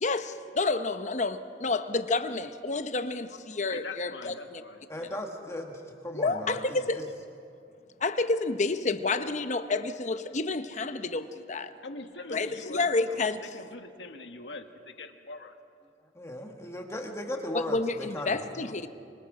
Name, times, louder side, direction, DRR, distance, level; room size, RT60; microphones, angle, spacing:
voice 1, 0.0-4.6 6.1-7.0 8.0-11.7 12.3-13.4 17.5-18.9, left 3 dB, 40° left, 10 dB, 0.9 m, -29 dB
voice 2, 3.0-3.4 3.7-5.5 6.2-7.1 11.8-15.6 18.1-18.9, left 3 dB, 90° left, 6 dB, 1.4 m, -44 dB
voice 3, 4.9-7.0 16.1-18.4, left 1 dB, 15° left, 2 dB, 1.5 m, -37 dB
25.0 x 24.0 x 5.0 m, 2.4 s
head